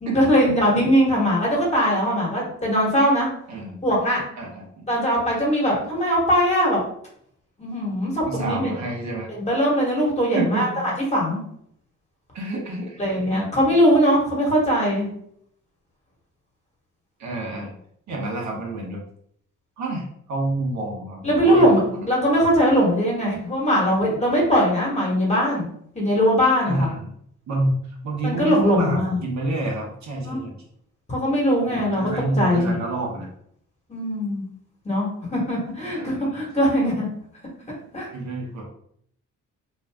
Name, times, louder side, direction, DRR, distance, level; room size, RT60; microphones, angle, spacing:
voice 1, 0.0-3.3 3.8-4.2 4.9-6.8 7.6-8.7 9.4-10.7 11.1-11.4 13.0-15.1 21.2-25.7 25.9-26.9 28.2-29.2 30.2-30.4 31.1-32.1 32.4-32.8 33.9-34.5 34.8-37.1 37.9-38.1, equal, 20° left, -3 dB, 1.3 m, -20 dB
voice 2, 4.4-4.9 8.2-9.3 10.3-10.6 12.3-13.7 17.2-17.7 18.1-19.0 19.8-22.1 26.7-27.1 27.5-30.6 31.6-33.3 35.9-36.4 38.1-38.6, right 2 dB, 65° right, -1 dB, 0.9 m, -28 dB
2.6 x 2.3 x 3.4 m, 0.68 s
cardioid pair, 90°, 30 cm